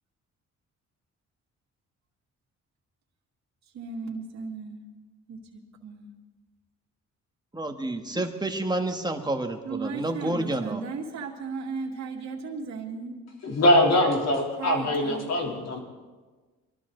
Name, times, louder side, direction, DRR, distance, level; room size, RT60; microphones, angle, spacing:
voice 1, 3.7-4.8 5.3-6.1 9.6-13.2 14.6-15.7, right 4 dB, 65° right, -2 dB, 2.3 m, -36 dB
voice 2, 7.5-10.8, right 2 dB, 15° right, 5 dB, 1.7 m, -29 dB
voice 3, 13.4-15.8, left 1 dB, 60° left, 1 dB, 3.5 m, -22 dB
23.0 x 13.0 x 4.0 m, 1.3 s
cardioid pair, 90°, 30 cm